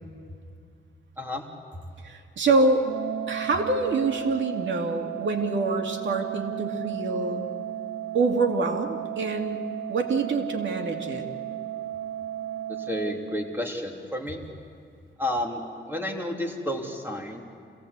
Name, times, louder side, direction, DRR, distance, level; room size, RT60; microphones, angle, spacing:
voice 1, 2.0-2.8 3.3-7.5 8.1-9.6 9.9-11.3, right 3 dB, 70° right, 3 dB, 2.5 m, -26 dB
Organ, 2.8-13.9, right 12 dB, 90° right, 1.2 m, -35 dB
voice 2, 12.8-14.4 15.2-17.4, left 1 dB, 10° right, 1 dB, 3.2 m, -31 dB
26.5 x 17.5 x 8.3 m, 2.3 s
cardioid pair, 90°, 20 cm